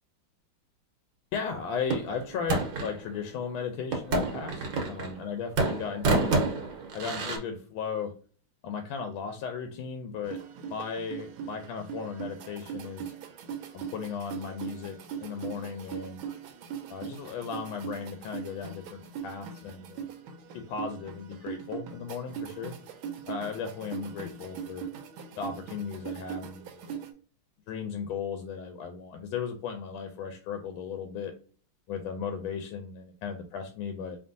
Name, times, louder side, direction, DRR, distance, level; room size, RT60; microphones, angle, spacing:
voice 1, 1.3-6.5 6.9-8.1 8.6-10.4 10.6-13.1 13.7-16.2 16.9-20.1 20.7-22.7 23.3-24.9 25.4-27.0 27.7-31.3 31.9-34.2, left 6 dB, 85° left, 6 dB, 1.4 m, -36 dB
sound 1, 1.9-3.0 3.9-5.3 5.6-7.4, right 3 dB, 70° right, 1.6 m, -28 dB
sound 2, 10.2-27.1, right 8 dB, 90° right, 1.5 m, -40 dB
4.4 x 3.1 x 2.6 m, 0.41 s
omnidirectional pair, 2.2 m